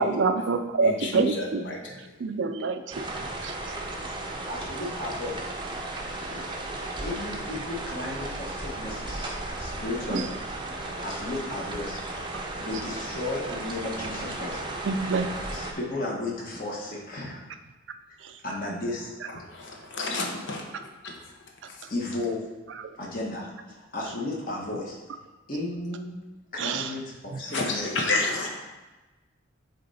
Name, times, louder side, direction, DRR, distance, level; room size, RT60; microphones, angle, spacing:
voice 1, 0.0-1.6 2.2-3.0 3.4-3.5 10.1-10.3 14.9-15.3 18.2-18.3 26.6-26.9 27.3-27.4, right 4 dB, 70° right, 8 dB, 0.4 m, -26 dB
voice 2, 0.8-2.0 19.5-21.3 21.6-21.9 27.3-28.5, left 2 dB, 70° left, 1 dB, 0.9 m, -31 dB
sound 1, 2.9-15.7, right 2 dB, 25° right, 0.6 m, -35 dB
voice 3, 4.4-5.5 7.0-9.3 9.6-10.3 11.0-12.0 12.6-14.6 15.1-17.4 18.4-19.1 21.9-22.4 23.0-25.0 25.5-26.1 26.5-28.1, left 2 dB, 45° left, -3 dB, 1.3 m, -34 dB
8.4 x 3.2 x 4.1 m, 1.2 s
head